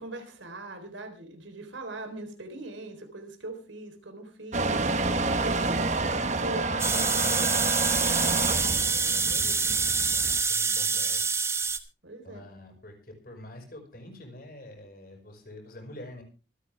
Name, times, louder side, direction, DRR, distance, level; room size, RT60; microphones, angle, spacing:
voice 1, 0.0-6.0 6.4-6.6 12.0-12.5, right 2 dB, 90° right, 6 dB, 4.0 m, -41 dB
Motor vehicle (road) / Engine starting / Accelerating revving vroom, 4.5-10.4, right 3 dB, 40° right, 1.2 m, -29 dB
voice 2, 5.5-8.1 8.5-11.2 12.2-16.2, left 1 dB, 50° left, 4 dB, 5.5 m, -47 dB
sound 1, 6.8-11.8, right 5 dB, 15° right, 0.9 m, -26 dB
25.5 x 9.0 x 3.5 m, 0.33 s
head